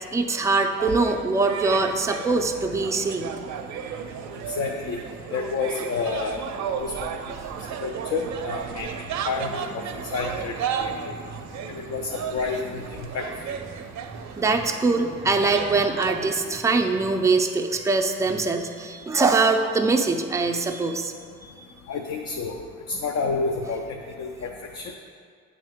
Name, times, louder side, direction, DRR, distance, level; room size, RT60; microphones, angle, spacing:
voice 1, 0.1-3.3 11.5-11.7 13.7-13.8 14.4-21.1 21.4-21.7, right 3 dB, 10° right, 4 dB, 0.4 m, -23 dB
sound 1, 0.8-16.1, right 7 dB, 65° right, 0.5 m, -34 dB
voice 2, 4.5-5.0 5.3-6.4 6.8-7.1 7.8-8.9 9.3-9.8 10.1-10.5 10.8-11.2 11.8-12.9 13.1-13.3 21.9-22.6 22.9-23.8 24.2-24.8, left 4 dB, 60° left, 2 dB, 0.5 m, -29 dB
8.2 x 3.2 x 3.5 m, 2.1 s
cardioid pair, 90°, 30 cm